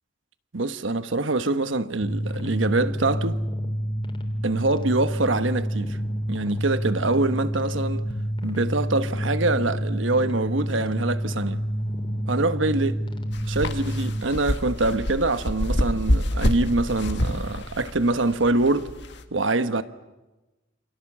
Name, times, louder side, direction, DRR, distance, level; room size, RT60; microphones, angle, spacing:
voice 1, 0.5-3.4 4.4-6.0 6.3-8.1 8.4-11.6 12.3-13.0 13.5-18.9 19.3-19.8, right 2 dB, 85° right, 1.2 m, -24 dB
sound 1, 2.0-14.2, equal, 25° left, 3.4 m, -28 dB
sound 2, 13.3-19.2, left 1 dB, 65° left, 1.8 m, -27 dB
28.5 x 26.5 x 7.5 m
head